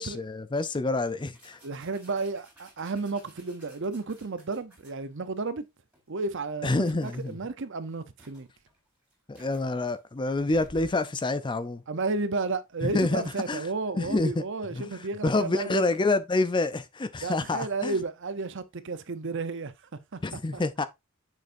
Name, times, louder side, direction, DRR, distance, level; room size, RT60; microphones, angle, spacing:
voice 1, 0.0-1.6 6.6-7.3 9.3-11.8 12.8-13.7 13.9-14.4 14.7-17.9 20.2-20.8, left 2 dB, 20° left, 0.5 m, -28 dB
sound 1, 1.3-5.4 5.9-6.1 6.5-7.4 7.9-8.0 8.2-11.1, equal, 5° right, 3.8 m, -55 dB
voice 2, 1.6-5.6 6.1-8.5 11.9-15.8 17.2-19.7 20.1-20.2 20.5-20.6, right 3 dB, 60° right, 0.7 m, -32 dB
6.6 x 6.5 x 2.6 m
head